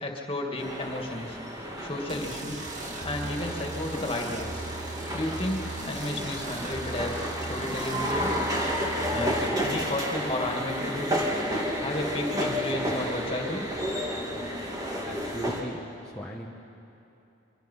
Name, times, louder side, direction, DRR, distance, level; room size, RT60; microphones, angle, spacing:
voice 1, 0.0-1.4 1.8-2.6 3.0-4.6 5.1-8.3 9.1-11.2 11.8-13.7, left 1 dB, 30° left, 1 dB, 2.5 m, -32 dB
sound 1, 0.6-15.6, equal, 20° right, 2.5 m, -31 dB
sound 2, 2.1-9.5, right 2 dB, 40° right, 2.2 m, -38 dB
voice 2, 15.0-16.5, equal, 5° left, -4 dB, 1.3 m, -38 dB
25.5 x 24.0 x 5.8 m, 2.8 s
head